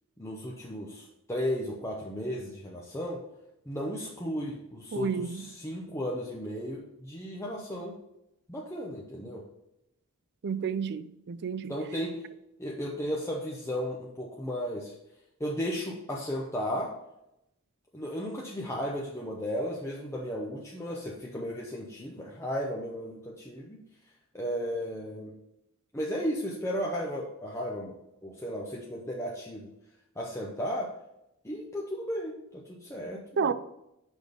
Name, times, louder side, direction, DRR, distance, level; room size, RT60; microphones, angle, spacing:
voice 1, 0.2-3.2 3.7-8.0 8.5-9.4 11.7-12.1 12.6-14.9 15.4-16.9 17.9-23.8 24.3-25.3 25.9-27.9 28.2-29.7 30.2-30.9 31.4-33.5, equal, 15° left, 0.8 m, -34 dB
voice 2, 4.9-5.4 10.4-11.7 33.4-33.5, right 6 dB, 55° right, 0.4 m, -30 dB
6.3 x 5.2 x 5.2 m
head